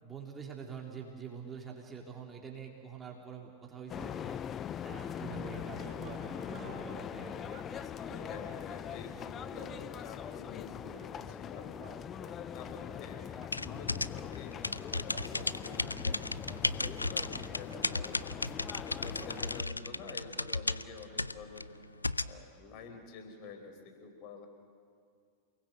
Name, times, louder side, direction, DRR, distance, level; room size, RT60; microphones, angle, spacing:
voice 1, 0.0-4.4 4.8-7.6, right 6 dB, 15° right, 0 dB, 3.2 m, -46 dB
sound 1, 3.9-19.6, left 9 dB, 25° left, 0.7 m, -42 dB
sound 2, 4.8-20.8, right 8 dB, 45° right, 2.0 m, -54 dB
voice 2, 8.0-11.7 12.3-14.5 15.0-18.2 18.7-21.7 22.3-24.5, left 5 dB, 40° left, 5 dB, 4.4 m, -49 dB
sound 3, 13.5-22.4, left 2 dB, 80° left, 0.5 m, -35 dB
28.5 x 20.0 x 7.9 m, 2.2 s
figure-of-eight pair, 90°, 0 cm